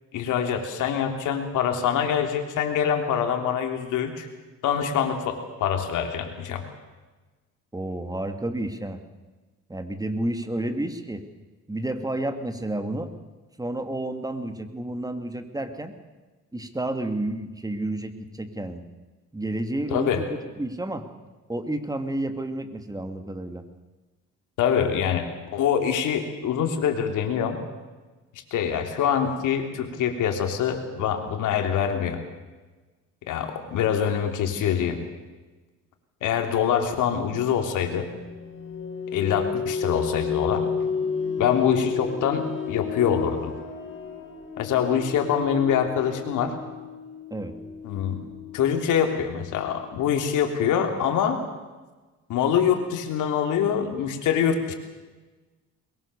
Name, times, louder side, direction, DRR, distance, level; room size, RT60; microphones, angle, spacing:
voice 1, 0.1-4.3 4.6-6.6 19.9-20.2 24.6-27.6 28.3-32.2 33.2-35.0 36.2-38.1 39.1-40.7 41.4-43.5 44.6-46.5 47.8-48.2 48.5-51.4 52.3-54.7, left 8 dB, 85° left, 5 dB, 3.3 m, -25 dB
voice 2, 7.7-9.0 9.7-11.2 11.7-13.1 13.6-15.9 16.5-18.8 19.3-21.1 21.5-23.7 47.3-47.5, right 1 dB, 10° right, 7 dB, 2.7 m, -30 dB
sound 1, 37.8-50.3, left 5 dB, 45° left, 7.0 m, -32 dB
22.5 x 22.0 x 7.0 m, 1.3 s
cardioid pair, 90°, 30 cm